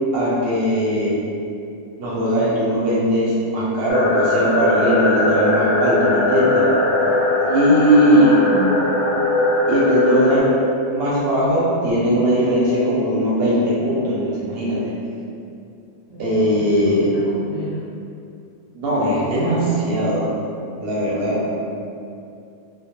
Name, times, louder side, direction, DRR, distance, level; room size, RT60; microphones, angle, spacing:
voice 1, 0.1-1.2 2.0-6.7 7.5-8.4 9.7-10.6 10.9-14.9 16.2-17.1 18.7-20.3 20.8-21.5, equal, 65° right, -7 dB, 0.7 m, -19 dB
sound 1, 3.9-10.4, left 2 dB, 65° left, 0.7 m, -19 dB
voice 2, 8.0-8.8 16.1-17.8, left 1 dB, 25° right, -13 dB, 0.6 m, -30 dB
2.3 x 2.0 x 2.8 m, 2.5 s
omnidirectional pair, 1.2 m